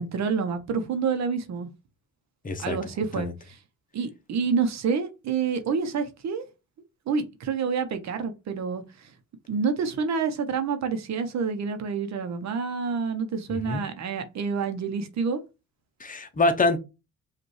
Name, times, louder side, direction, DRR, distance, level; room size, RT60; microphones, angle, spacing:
voice 1, 0.0-1.7 2.6-3.6 3.9-6.4 7.1-8.8 9.5-15.4, right 5 dB, 65° right, 0.9 m, -28 dB
voice 2, 2.4-2.8 3.2-3.3 13.5-13.8 16.0-16.8, left 2 dB, 25° left, 0.9 m, -25 dB
5.1 x 2.6 x 3.2 m
cardioid pair, 90°, 30 cm